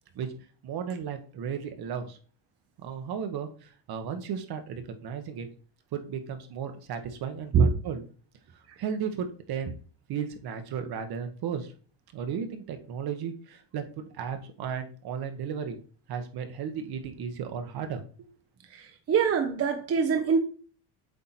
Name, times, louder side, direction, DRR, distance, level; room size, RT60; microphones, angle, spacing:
voice 1, 0.6-2.2 2.8-5.5 5.9-8.0 8.8-9.8 10.1-11.7 12.1-15.8 16.1-18.3, right 7 dB, 50° right, 1.2 m, -35 dB
voice 2, 18.7-20.4, right 6 dB, 30° right, 0.8 m, -24 dB
8.2 x 2.9 x 4.1 m
supercardioid pair, 90°, 49 cm